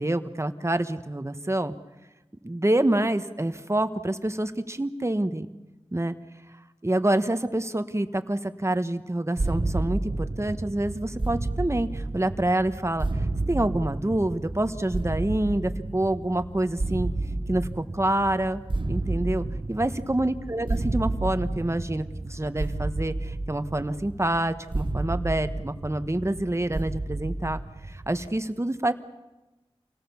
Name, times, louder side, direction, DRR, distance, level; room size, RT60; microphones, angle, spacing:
voice 1, 0.0-1.7 2.4-5.5 5.9-6.1 6.8-13.1 13.5-17.1 17.5-18.6 18.9-27.6 27.9-28.9, right 1 dB, 25° right, 10 dB, 1.4 m, -27 dB
sound 1, 9.4-28.3, right 2 dB, 50° right, 1.4 m, -31 dB
28.0 x 18.5 x 7.2 m, 1.1 s
wide cardioid pair, 45°, 11 cm